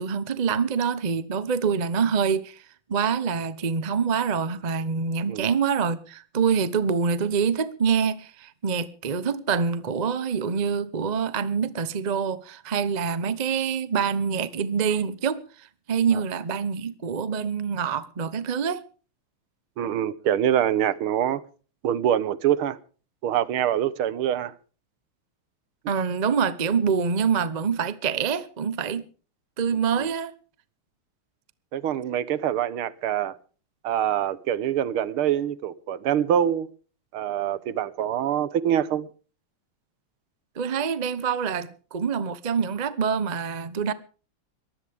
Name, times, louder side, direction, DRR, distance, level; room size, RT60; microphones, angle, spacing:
voice 1, 0.0-2.6 2.9-15.4 15.9-18.8 25.9-29.0 29.6-30.3 40.6-43.9, right 6 dB, 55° right, 0.4 m, -25 dB
voice 2, 19.8-21.4 21.8-22.8 23.2-24.5 31.7-33.4 33.8-36.7 37.1-39.1, right 10 dB, 75° right, 1.9 m, -25 dB
22.0 x 15.5 x 3.6 m
omnidirectional pair, 2.4 m